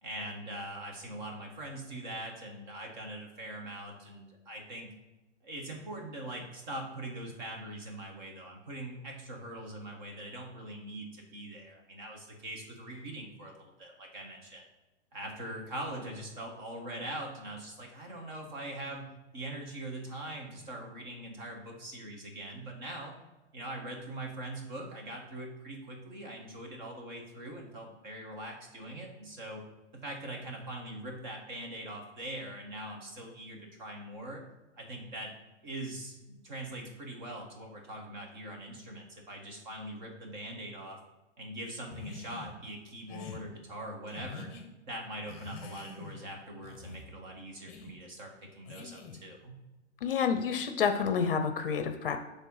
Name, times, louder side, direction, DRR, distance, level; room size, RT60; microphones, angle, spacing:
voice 1, 0.0-4.9 5.4-14.6 15.1-23.1 23.5-29.6 29.9-34.4 34.8-35.3 35.6-41.0 41.4-44.5 44.9-49.6, right 1 dB, 40° right, 1 dB, 1.5 m, -42 dB
sound 1, 41.9-42.5 43.1-43.4 44.1-44.6 45.3-46.2 46.6-47.1 47.7-47.9 48.7-49.3, left 5 dB, 30° left, 0.9 m, -45 dB
voice 2, 50.0-52.2, left 6 dB, 50° left, 8 dB, 0.6 m, -29 dB
7.3 x 3.4 x 5.6 m, 1.0 s
hypercardioid pair, 175°, 36 cm